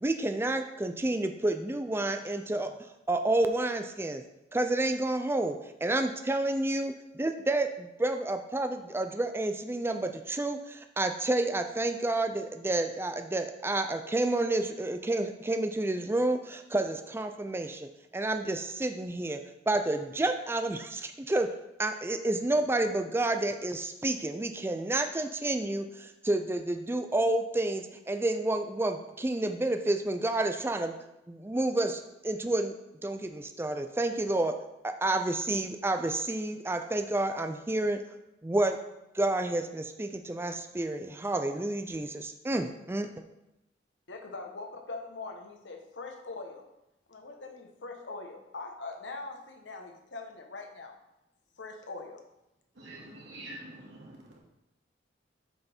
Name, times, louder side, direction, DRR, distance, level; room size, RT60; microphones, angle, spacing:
voice 1, 0.0-2.7 3.1-4.2 4.5-19.4 19.7-21.5 21.8-30.9 31.3-32.7 33.0-34.5 34.8-38.0 38.4-38.8 39.1-43.1, right 2 dB, 15° right, 7 dB, 0.4 m, -30 dB
voice 2, 44.1-46.6 47.1-50.9 51.6-52.2, left 3 dB, 90° left, 3 dB, 1.2 m, -42 dB
voice 3, 52.8-54.4, right 1 dB, 90° right, -3 dB, 2.3 m, -46 dB
7.8 x 5.5 x 4.4 m, 0.90 s
head